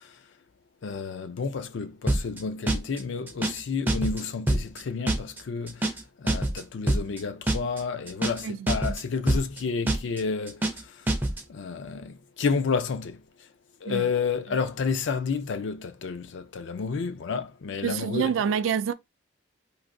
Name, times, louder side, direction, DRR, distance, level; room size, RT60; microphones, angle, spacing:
voice 1, 0.8-5.8 6.2-10.6 11.5-13.2 13.8-18.3, left 5 dB, 70° left, 0.4 m, -30 dB
sound 1, 2.1-2.4 2.7-3.0 3.3-3.6 3.9-4.2 4.5-4.8 5.1-5.4 5.7-6.0 6.3-6.6 6.9-7.2 7.5-7.8 8.1-8.4 8.7-9.0 9.3-9.6 9.9-10.2 10.5-10.8 11.1-11.4, right 1 dB, 10° right, 0.4 m, -25 dB
voice 2, 8.4-9.0 13.9-14.1 17.8-18.9, right 7 dB, 80° right, 0.3 m, -27 dB
3.2 x 2.6 x 2.5 m
head